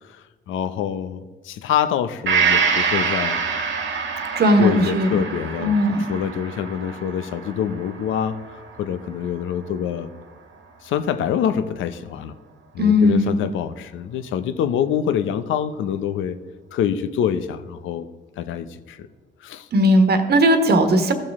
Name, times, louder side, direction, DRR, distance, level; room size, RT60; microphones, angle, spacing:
voice 1, 0.5-3.4 4.6-5.7 6.0-8.4 8.8-10.1 10.8-12.3 12.7-16.4 16.7-18.1 18.4-19.1 19.4-19.7, left 9 dB, 80° left, 10 dB, 0.7 m, -25 dB
Gong, 2.3-9.9 10.3-10.4, right 6 dB, 70° right, 1.6 m, -26 dB
voice 2, 4.3-5.2 5.6-6.0 12.8-13.4 19.7-21.1, equal, 55° right, 7 dB, 1.4 m, -17 dB
15.5 x 6.7 x 3.6 m, 1.3 s
cardioid pair, 90°, 20 cm